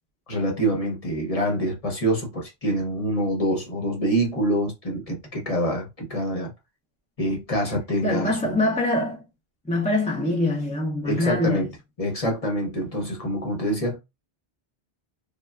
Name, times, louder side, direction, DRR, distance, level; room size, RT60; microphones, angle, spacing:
voice 1, 0.3-6.5 7.2-8.6 11.0-11.7 12.0-14.0, right 1 dB, 35° left, 0.9 m, -26 dB
voice 2, 8.0-9.2 9.7-11.7, left 2 dB, 10° left, 0.4 m, -24 dB
3.2 x 2.3 x 2.3 m
omnidirectional pair, 1.1 m